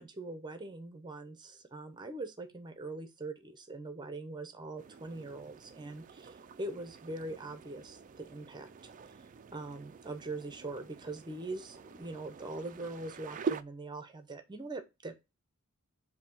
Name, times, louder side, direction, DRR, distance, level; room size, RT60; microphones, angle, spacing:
voice 1, 0.0-8.7 9.5-15.2, right 2 dB, 20° right, 0.7 m, -42 dB
sound 1, 4.8-13.6, right 5 dB, 35° right, 0.3 m, -44 dB
7.0 x 2.8 x 5.3 m
head